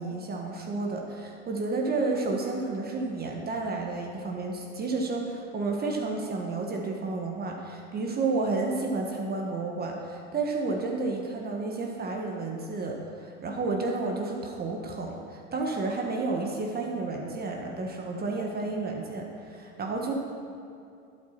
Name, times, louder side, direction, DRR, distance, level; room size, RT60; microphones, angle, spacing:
voice 1, 0.0-20.1, right 3 dB, 25° right, 0 dB, 1.4 m, -31 dB
11.5 x 8.7 x 4.4 m, 2.4 s
hypercardioid pair, 100°, 38 cm